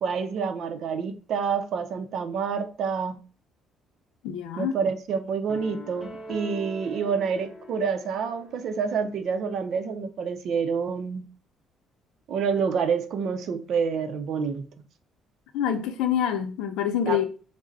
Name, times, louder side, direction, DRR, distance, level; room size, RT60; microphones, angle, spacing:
voice 1, 0.0-3.2 4.6-11.2 12.3-14.7 17.1-17.2, right 6 dB, 65° right, 0.5 m, -28 dB
voice 2, 4.2-4.8 15.5-17.2, left 9 dB, 85° left, 0.5 m, -26 dB
sound 1, 5.5-8.7, left 1 dB, 20° left, 0.9 m, -42 dB
4.8 x 2.1 x 4.0 m
cardioid pair, 100°, 0 cm